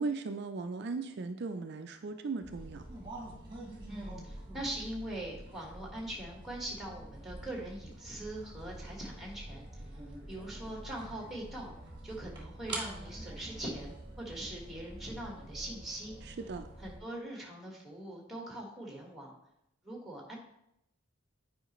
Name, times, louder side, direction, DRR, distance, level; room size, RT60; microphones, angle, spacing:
voice 1, 0.0-2.8 16.2-16.7, right 4 dB, 50° right, 7 dB, 0.4 m, -37 dB
sound 1, 2.4-17.0, right 1 dB, 20° right, 1.5 m, -46 dB
voice 2, 3.9-9.9 10.3-11.7 12.0-16.2 16.8-19.3 19.8-20.4, right 1 dB, ahead, -1 dB, 1.4 m, -42 dB
9.0 x 5.0 x 3.0 m, 0.80 s
head